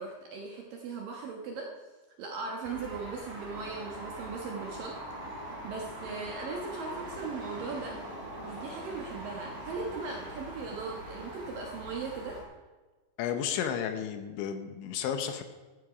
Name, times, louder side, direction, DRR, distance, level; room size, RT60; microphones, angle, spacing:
voice 1, 0.0-1.7 2.2-8.0 8.4-12.4, right 4 dB, 65° right, 0 dB, 2.3 m, -39 dB
sound 1, 2.6-12.4, right 1 dB, 45° right, 5.0 m, -42 dB
voice 2, 13.2-15.4, left 8 dB, 75° left, 8 dB, 3.1 m, -32 dB
14.0 x 12.5 x 5.0 m, 1.3 s
omnidirectional pair, 5.6 m